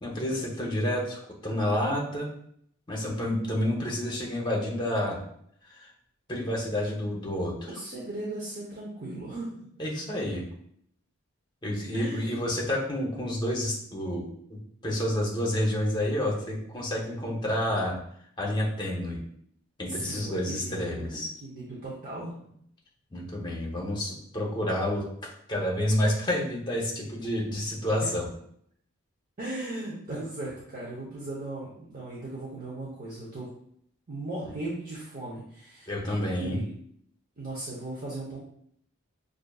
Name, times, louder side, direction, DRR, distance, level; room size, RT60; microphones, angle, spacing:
voice 1, 0.0-2.3 2.9-5.2 5.7-5.9 6.3-7.7 9.8-10.4 11.6-18.0 18.4-19.2 19.8-21.3 23.1-25.0 25.5-28.3 35.9-36.6, left 1 dB, 20° left, -2 dB, 0.8 m, -29 dB
voice 2, 7.7-9.7 11.9-12.3 19.9-22.5 28.0-28.1 29.4-33.5 34.1-35.9 36.4-36.7 37.4-38.4, right 2 dB, 40° right, -6 dB, 0.8 m, -37 dB
6.0 x 2.5 x 2.3 m, 0.68 s
head